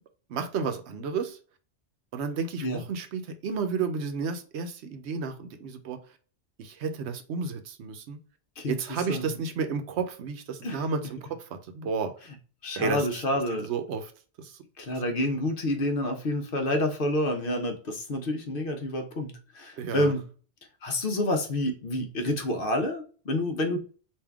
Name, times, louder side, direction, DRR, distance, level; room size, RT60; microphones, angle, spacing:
voice 1, 0.3-1.4 2.1-6.0 6.6-8.2 8.7-12.1 12.8-13.1 13.6-14.1 14.4-14.6 19.8-20.1, right 5 dB, 70° right, 7 dB, 0.9 m, -32 dB
voice 2, 12.6-13.7 14.8-20.2 20.8-23.8, left 1 dB, 55° left, 4 dB, 0.8 m, -28 dB
3.5 x 2.6 x 3.4 m, 0.39 s
omnidirectional pair, 1.2 m